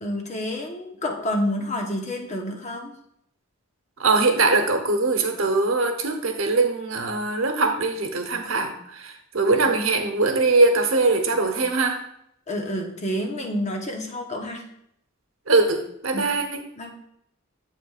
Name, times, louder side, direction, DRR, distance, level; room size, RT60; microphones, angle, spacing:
voice 1, 0.0-2.9 12.5-14.6 16.1-16.3 16.8-16.9, left 1 dB, 35° left, 2 dB, 1.1 m, -29 dB
voice 2, 4.0-12.0 15.5-16.6, right 3 dB, 75° right, 6 dB, 1.0 m, -22 dB
8.4 x 7.4 x 2.4 m, 0.73 s
head